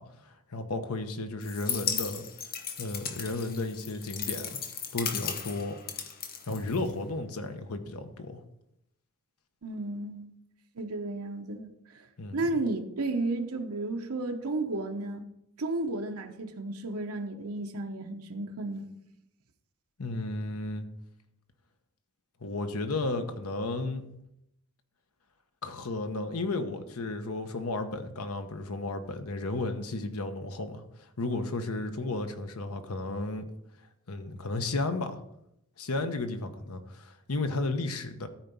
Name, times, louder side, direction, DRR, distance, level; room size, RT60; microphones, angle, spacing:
voice 1, 0.0-2.2 2.8-4.6 4.9-5.8 6.5-8.4 12.2-12.4 20.0-20.9 22.4-24.0 25.6-33.5 34.1-35.2 35.8-38.3, left 2 dB, 85° left, 1.1 m, -33 dB
sound 1, 1.4-7.1, left 7 dB, 45° left, 0.9 m, -36 dB
voice 2, 9.6-10.3 10.7-12.1 12.3-15.2 15.6-18.9, right 2 dB, 90° right, 0.9 m, -33 dB
13.0 x 4.6 x 5.4 m
head